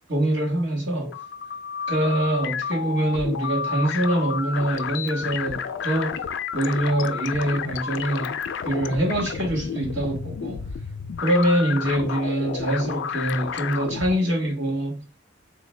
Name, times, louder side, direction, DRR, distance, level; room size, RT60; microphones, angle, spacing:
voice 1, 0.1-1.2 1.9-6.2 6.5-8.4 8.6-10.7 11.2-15.0, right 1 dB, 75° right, 1.5 m, -24 dB
sound 1, 0.9-14.2, left 6 dB, 70° left, 0.3 m, -31 dB
3.8 x 2.2 x 3.2 m
head